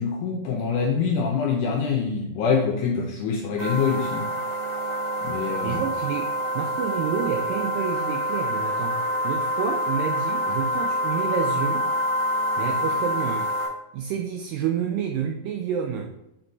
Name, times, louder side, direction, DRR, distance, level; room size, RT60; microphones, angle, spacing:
voice 1, 0.0-4.3 5.2-5.8, left 5 dB, 85° left, 1 dB, 1.8 m, -25 dB
sound 1, 3.6-13.7, equal, 15° right, 1.4 m, -26 dB
voice 2, 5.6-12.0 12.6-13.5 13.9-16.1, right 7 dB, 80° right, 3 dB, 2.0 m, -29 dB
7.8 x 4.4 x 3.9 m, 0.86 s
omnidirectional pair, 4.3 m